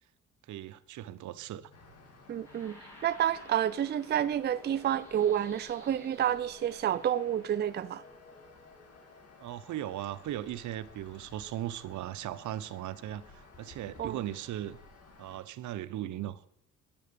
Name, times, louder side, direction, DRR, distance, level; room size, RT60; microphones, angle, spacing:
voice 1, 0.5-1.7 9.4-14.8 15.2-16.5, right 13 dB, 75° right, 0.7 m, -38 dB
sound 1, 1.1-11.6, left 3 dB, 90° left, 3.8 m, -57 dB
sound 2, 1.7-15.4, left 3 dB, 55° left, 2.3 m, -56 dB
voice 2, 2.3-2.8 3.0-8.0 14.0-14.2, right 10 dB, 35° right, 0.4 m, -29 dB
sound 3, 2.4-8.1, equal, 10° left, 5.3 m, -56 dB
9.6 x 8.8 x 6.7 m
cardioid pair, 90°, 30 cm